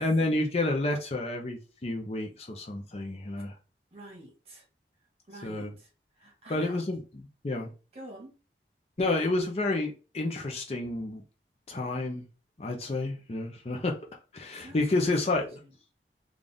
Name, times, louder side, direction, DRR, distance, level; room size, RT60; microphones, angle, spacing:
voice 1, 0.0-3.5 5.4-5.7 6.5-7.7 9.0-11.2 11.7-12.3 12.6-13.9 14.3-15.5, left 2 dB, 35° left, 0.6 m, -30 dB
voice 2, 3.9-4.6 5.3-5.9 6.2-6.8 7.9-8.3 14.6-15.7, right 1 dB, 35° right, 1.3 m, -47 dB
3.9 x 2.4 x 3.4 m
head